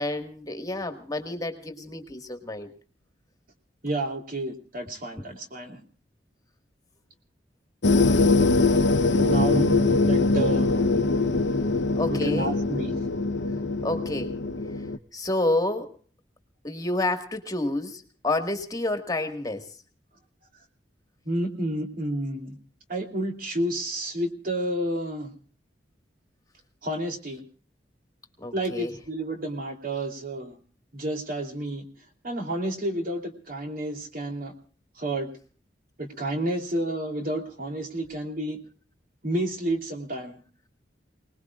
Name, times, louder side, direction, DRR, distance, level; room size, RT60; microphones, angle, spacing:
voice 1, 0.0-2.7 12.0-12.5 13.8-14.3 15.1-15.9 16.6-19.7 28.4-28.9, left 2 dB, 20° left, 6 dB, 1.7 m, -29 dB
voice 2, 3.8-5.8 9.1-9.7 10.0-10.8 12.1-12.9 21.2-22.6 22.9-25.3 26.8-27.4 28.5-30.6 30.9-31.8 32.2-34.5 35.0-35.3 36.0-38.6 39.2-40.4, right 1 dB, 55° right, 4 dB, 3.2 m, -30 dB
sound 1, 7.8-15.0, left 3 dB, 80° left, 0.8 m, -22 dB
28.5 x 19.5 x 2.4 m, 0.41 s
head